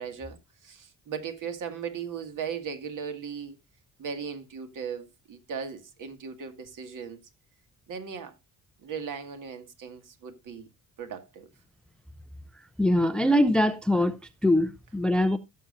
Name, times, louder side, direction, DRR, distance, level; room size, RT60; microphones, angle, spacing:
voice 1, 0.0-3.6 4.0-7.2 7.9-8.3 8.8-10.7 11.0-11.5, right 6 dB, 60° right, 2.0 m, -37 dB
voice 2, 12.8-15.4, left 1 dB, 5° left, 0.5 m, -23 dB
16.5 x 7.1 x 2.5 m
cardioid pair, 155°, 35 cm